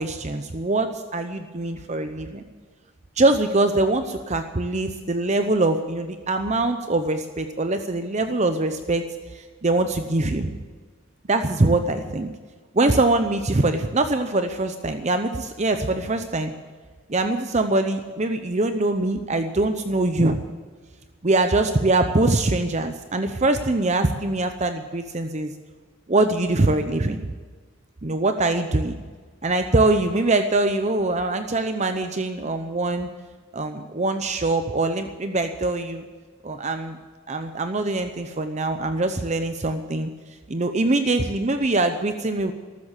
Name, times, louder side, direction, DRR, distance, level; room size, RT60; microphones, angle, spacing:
voice 1, 0.0-2.4 3.2-9.0 9.3-10.6 11.3-12.3 12.7-16.5 17.1-20.4 21.2-25.5 26.1-27.2 28.0-28.9 29.4-33.1 33.5-36.0 36.4-37.0 37.3-40.1 40.5-42.5, right 2 dB, 35° right, 8 dB, 0.7 m, -23 dB
14.0 x 13.0 x 7.3 m, 1.5 s
head